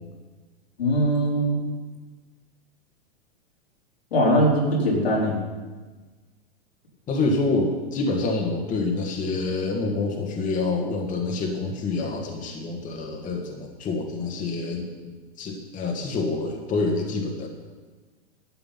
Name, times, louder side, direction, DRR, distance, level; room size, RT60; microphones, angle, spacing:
voice 1, 0.8-1.6 4.1-5.4, equal, 85° left, -4 dB, 3.9 m, -21 dB
voice 2, 7.1-17.5, left 3 dB, 25° left, 1 dB, 1.6 m, -27 dB
11.5 x 7.8 x 5.7 m, 1.3 s
hypercardioid pair, 110°, 30 cm